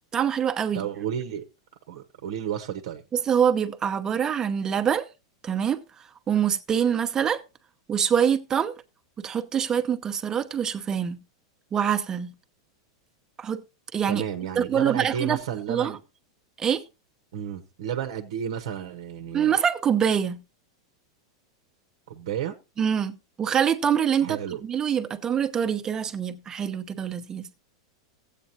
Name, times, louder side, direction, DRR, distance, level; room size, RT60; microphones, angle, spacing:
voice 1, 0.1-0.9 3.1-5.1 5.4-7.4 7.9-8.8 9.2-11.2 11.7-12.3 13.4-13.6 13.9-14.2 14.5-15.4 15.7-16.0 16.6-16.8 19.3-20.4 22.8-27.5, right 8 dB, 25° right, 0.9 m, -25 dB
voice 2, 0.7-1.4 1.9-3.0 14.1-16.0 17.3-19.5 22.1-22.5 24.2-24.6, right 9 dB, 70° right, 0.9 m, -32 dB
14.5 x 8.4 x 2.8 m
hypercardioid pair, 115°, 3 cm